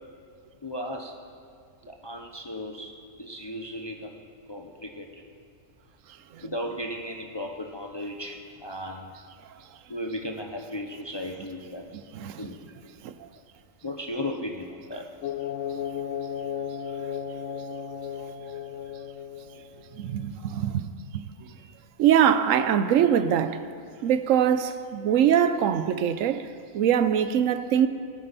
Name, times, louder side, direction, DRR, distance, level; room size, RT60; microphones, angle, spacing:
voice 1, 0.6-1.2 1.9-4.2 4.5-5.2 6.4-9.1 9.9-12.0 12.4-12.6 13.8-15.1, left 1 dB, 30° left, 0.5 m, -35 dB
voice 2, 11.9-12.5 13.0-13.1 20.0-20.9 21.1-21.5 22.0-23.6 24.0-26.5 26.7-27.9, right 9 dB, 80° right, 1.0 m, -23 dB
sound 1, 15.2-19.9, left 8 dB, 75° left, 0.9 m, -34 dB
19.0 x 8.7 x 4.1 m
omnidirectional pair, 1.4 m